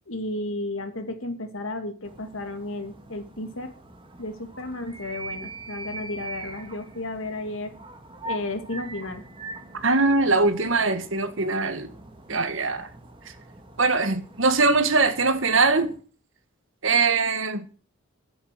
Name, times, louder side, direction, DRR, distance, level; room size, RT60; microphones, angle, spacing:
voice 1, 0.1-3.7 4.2-7.7 8.2-9.2 12.3-12.4, left 2 dB, 75° left, 2.4 m, -33 dB
sound 1, 2.0-16.0, right 2 dB, 25° right, 1.7 m, -42 dB
voice 2, 9.8-11.9 12.3-12.9 13.8-16.0 16.8-17.6, right 3 dB, 65° right, 1.7 m, -22 dB
11.5 x 7.9 x 7.8 m
head